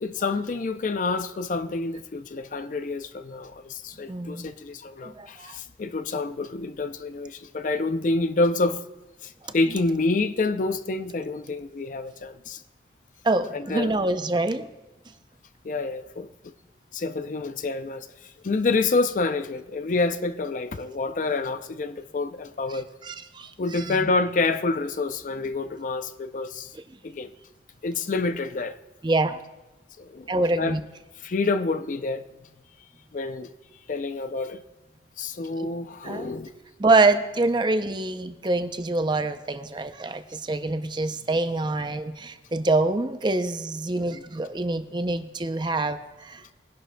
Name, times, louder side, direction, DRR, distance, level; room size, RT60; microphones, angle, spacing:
voice 1, 0.0-8.8 9.2-12.6 13.5-14.0 15.6-16.5 16.9-22.9 23.6-26.7 27.0-27.3 27.8-28.8 30.0-30.8 31.2-32.3 33.1-33.5 33.9-34.6 35.2-36.5 44.0-44.2, left 3 dB, 45° left, 0.4 m, -28 dB
voice 2, 4.1-4.5 5.0-5.6 9.5-9.7 13.2-14.7 22.7-24.1 29.0-29.4 30.3-30.8 35.6-35.7 36.0-36.3 36.8-46.5, right 2 dB, 25° right, 0.5 m, -26 dB
21.5 x 11.0 x 2.2 m
head